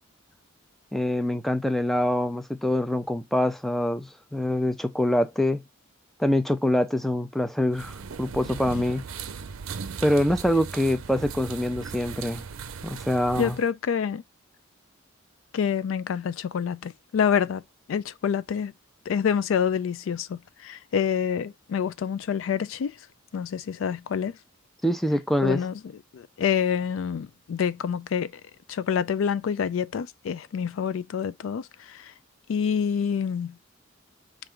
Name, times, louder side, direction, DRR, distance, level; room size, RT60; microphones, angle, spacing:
voice 1, 0.9-5.6 6.2-9.1 10.0-12.4 12.8-13.6 24.8-25.6, left 1 dB, ahead, 0.4 m, -25 dB
sound 1, 7.7-13.7, right 6 dB, 85° right, 0.5 m, -38 dB
voice 2, 13.4-14.2 15.5-17.6 17.9-18.7 19.1-23.0 23.3-24.4 25.4-25.7 26.1-28.4 28.7-32.1 32.5-33.6, left 7 dB, 70° left, 0.3 m, -27 dB
4.5 x 2.6 x 3.6 m
head